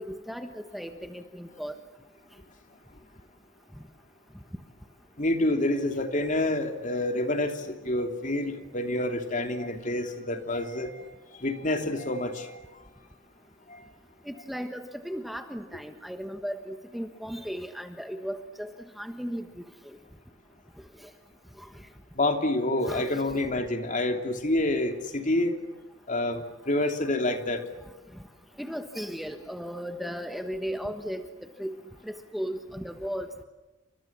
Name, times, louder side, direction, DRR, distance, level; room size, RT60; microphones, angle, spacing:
voice 1, 0.0-1.7 14.2-20.0 21.0-21.1 21.6-21.8 22.8-23.2 28.6-31.2 31.6-31.7 32.0-33.3, equal, ahead, 6 dB, 1.3 m, -36 dB
voice 2, 5.2-11.0 11.4-12.6 13.7-13.8 22.1-25.5 26.1-27.6, left 1 dB, 40° left, 5 dB, 2.9 m, -28 dB
29.5 x 26.0 x 7.4 m, 1.1 s
head